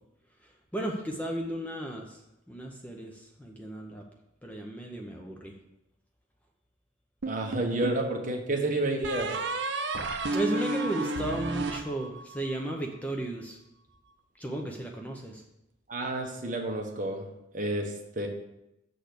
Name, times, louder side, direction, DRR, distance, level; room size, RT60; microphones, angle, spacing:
voice 1, 0.4-2.2 2.5-4.0 4.4-5.6 10.3-13.6 14.4-15.4, right 1 dB, 5° left, 1 dB, 0.6 m, -34 dB
sound 1, 7.2-8.1 9.0-12.5, right 2 dB, 60° right, 0.6 m, -32 dB
voice 2, 7.3-9.3 15.9-17.3 17.5-18.3, right 2 dB, 40° right, 2 dB, 1.0 m, -30 dB
6.9 x 4.1 x 6.5 m, 0.87 s
head